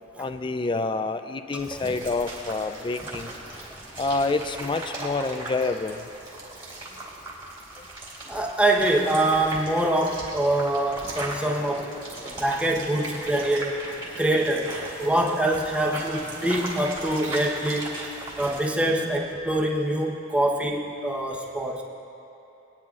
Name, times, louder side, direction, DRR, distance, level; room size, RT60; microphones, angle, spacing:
voice 1, 0.2-3.3 4.0-6.1 7.8-7.9 11.1-11.4 12.1-12.4 14.1-14.2 16.3-16.5, left 3 dB, 25° left, 9 dB, 0.4 m, -28 dB
sound 1, 1.6-18.6, right 2 dB, 25° right, 2.8 m, -38 dB
voice 2, 8.3-11.9 12.2-13.8 14.2-18.0 18.4-21.8, right 1 dB, 5° right, -2 dB, 1.0 m, -24 dB
23.5 x 9.8 x 2.5 m, 2.9 s
head